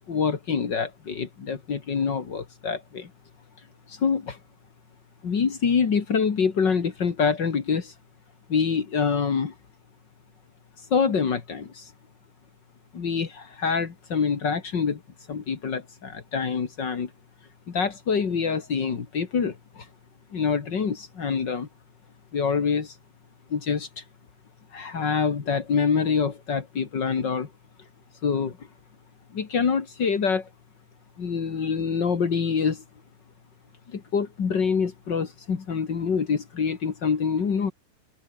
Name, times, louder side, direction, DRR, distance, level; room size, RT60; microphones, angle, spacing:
voice 1, 0.1-3.1 3.9-4.4 5.2-7.9 8.5-9.5 10.9-11.9 12.9-15.0 15.3-17.1 17.7-19.8 20.3-21.7 22.3-22.9 23.5-24.0 24.7-27.5 28.2-28.6 29.3-30.5 31.2-32.8 33.9-37.7, left 6 dB, 70° left, 1.0 m, -26 dB
omnidirectional pair, 5.5 m